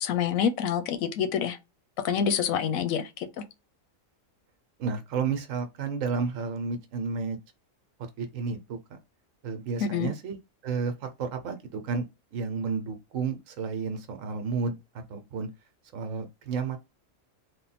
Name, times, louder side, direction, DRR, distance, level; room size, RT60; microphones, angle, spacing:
voice 1, 0.0-1.6 2.0-3.4 9.8-10.1, left 7 dB, 90° left, 1.1 m, -27 dB
voice 2, 4.8-7.4 8.2-9.0 9.4-10.4 10.6-12.0 12.3-14.8 15.1-15.5 15.9-16.8, right 5 dB, 75° right, 1.1 m, -31 dB
3.5 x 2.2 x 4.1 m
omnidirectional pair, 1.4 m